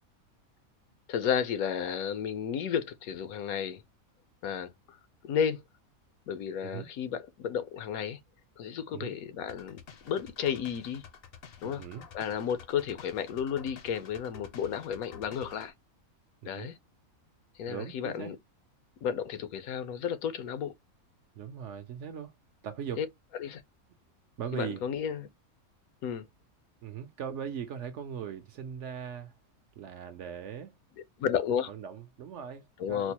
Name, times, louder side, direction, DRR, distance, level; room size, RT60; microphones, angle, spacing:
voice 1, 1.1-3.8 4.4-5.0 5.2-5.6 6.3-8.2 8.6-9.8 10.0-11.0 11.6-11.8 12.1-15.7 16.4-16.7 17.6-18.4 19.0-20.7 23.0-23.1 23.4-23.6 24.5-25.3 26.0-26.3 31.2-31.7 32.8-33.1, left 8 dB, 80° left, 1.1 m, -32 dB
sound 1, 9.5-15.7, left 7 dB, 60° left, 0.6 m, -50 dB
voice 2, 11.6-12.0 16.4-16.7 17.7-18.3 21.4-22.3 22.6-23.0 24.4-24.8 26.8-29.3 29.8-30.7 31.7-33.1, right 8 dB, 65° right, 0.8 m, -39 dB
4.4 x 2.0 x 2.9 m
omnidirectional pair, 1.5 m